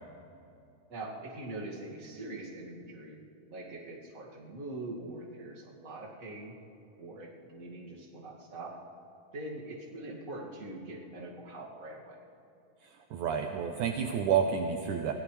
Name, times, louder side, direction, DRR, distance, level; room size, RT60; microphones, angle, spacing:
voice 1, 0.9-3.2 3.5-6.6 7.0-8.7 9.3-12.2, right 2 dB, 30° right, -3 dB, 2.0 m, -43 dB
voice 2, 12.8-15.1, right 7 dB, 75° right, 4 dB, 2.0 m, -30 dB
25.0 x 16.5 x 3.3 m, 2.7 s
omnidirectional pair, 4.0 m